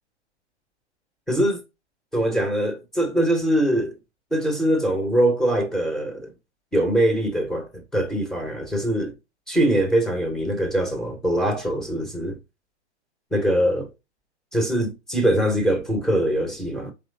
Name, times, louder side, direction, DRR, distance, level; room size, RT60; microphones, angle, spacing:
voice 1, 1.3-1.6 2.1-3.9 4.3-6.3 6.7-9.1 9.5-12.4 13.3-13.9 14.5-16.9, right 1 dB, ahead, 0.7 m, -22 dB
4.4 x 3.0 x 2.6 m
figure-of-eight pair, 110°, 34 cm